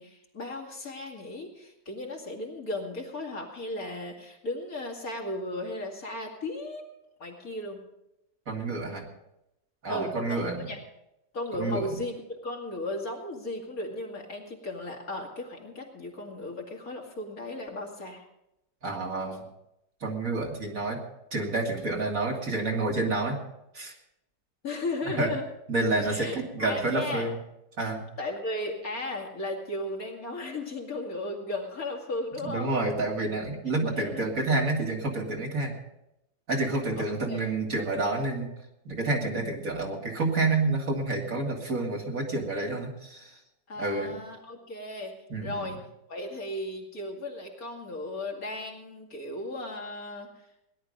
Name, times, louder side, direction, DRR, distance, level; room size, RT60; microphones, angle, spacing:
voice 1, 0.0-6.9 7.2-7.8 9.9-10.8 11.3-12.1 12.4-18.2 24.6-25.4 26.1-27.3 28.2-32.8 34.0-34.2 37.0-37.4 43.7-45.1 45.4-45.8 46.1-50.3, left 2 dB, 50° left, 0 dB, 2.7 m, -35 dB
voice 2, 8.5-9.1 9.8-10.7 11.5-12.0 18.8-19.4 20.0-21.0 21.3-23.4 23.7-23.9 25.1-25.3 25.7-27.3 27.8-28.1 32.4-35.8 36.5-38.5 38.9-43.4 43.8-44.1 45.3-45.7, right 2 dB, 50° right, 0 dB, 2.4 m, -29 dB
18.0 x 11.0 x 5.1 m, 0.86 s
omnidirectional pair, 1.9 m